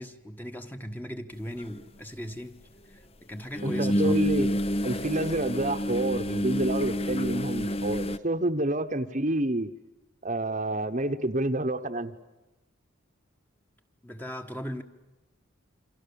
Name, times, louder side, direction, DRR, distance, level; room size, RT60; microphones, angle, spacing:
voice 1, 0.0-2.6 2.9-4.2 14.0-14.8, equal, 10° left, 1.4 m, -38 dB
sound 1, 1.6-1.7 3.5-8.2, equal, 30° left, 0.8 m, -28 dB
voice 2, 3.6-4.5 4.8-9.7 10.2-12.1, right 1 dB, 35° right, 1.1 m, -28 dB
29.0 x 27.0 x 7.1 m
head